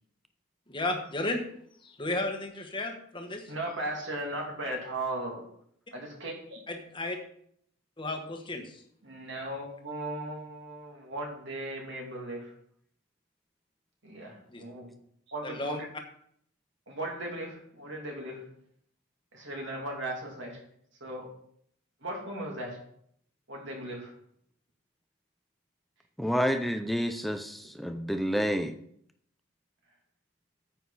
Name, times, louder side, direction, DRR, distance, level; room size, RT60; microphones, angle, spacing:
voice 1, 0.7-1.4 1.8-3.5 6.7-7.2 8.0-8.8 14.5-14.6 15.4-15.8, left 2 dB, 25° left, 4 dB, 1.3 m, -33 dB
voice 2, 3.5-5.4 5.9-6.6 9.0-12.5 14.0-14.9 15.3-15.9 16.9-18.4 19.3-20.6 21.0-21.3 22.0-22.8 23.5-24.1 26.5-26.6, right 1 dB, 55° right, 0 dB, 2.7 m, -37 dB
voice 3, 26.2-28.7, equal, ahead, 7 dB, 0.5 m, -29 dB
9.4 x 8.0 x 4.1 m, 0.67 s
head